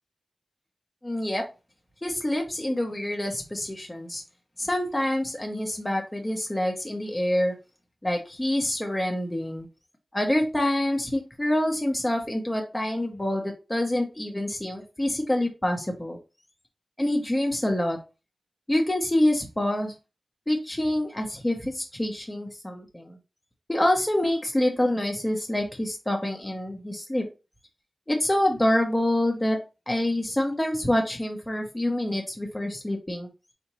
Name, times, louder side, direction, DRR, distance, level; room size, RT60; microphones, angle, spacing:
voice 1, 1.0-1.4 2.0-4.2 4.6-7.5 8.0-9.7 10.1-16.2 17.0-18.0 18.7-19.9 20.5-23.2 23.7-27.2 28.1-29.6 29.9-33.3, left 1 dB, 15° left, 2 dB, 0.7 m, -26 dB
4.2 x 2.8 x 2.9 m, 0.29 s
wide cardioid pair, 90°, 0 cm